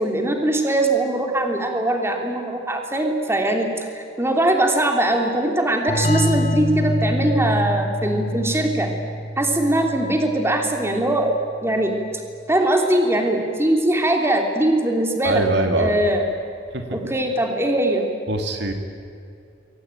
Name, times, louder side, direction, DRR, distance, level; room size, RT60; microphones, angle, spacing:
voice 1, 0.0-8.9 9.4-11.9 12.5-15.4 15.7-16.2 16.9-18.1, right 1 dB, 15° right, 3 dB, 3.0 m, -21 dB
sound 1, 5.9-11.3, equal, 40° left, 1.7 m, -26 dB
voice 2, 15.2-16.0 16.7-17.0 18.3-18.7, right 1 dB, 65° right, 5 dB, 2.7 m, -23 dB
27.5 x 23.5 x 9.2 m, 2.5 s
head